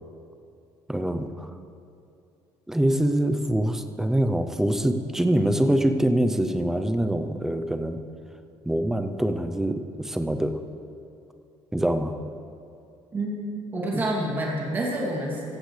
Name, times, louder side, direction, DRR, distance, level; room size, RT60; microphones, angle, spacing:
voice 1, 0.9-1.5 2.7-8.0 8.6-10.6 11.7-12.2 13.9-14.1, right 1 dB, 5° right, 7 dB, 0.6 m, -24 dB
voice 2, 13.1-15.6, right 1 dB, 20° right, -3 dB, 2.6 m, -28 dB
16.0 x 15.0 x 3.3 m, 2.6 s
cardioid pair, 165°, 9 cm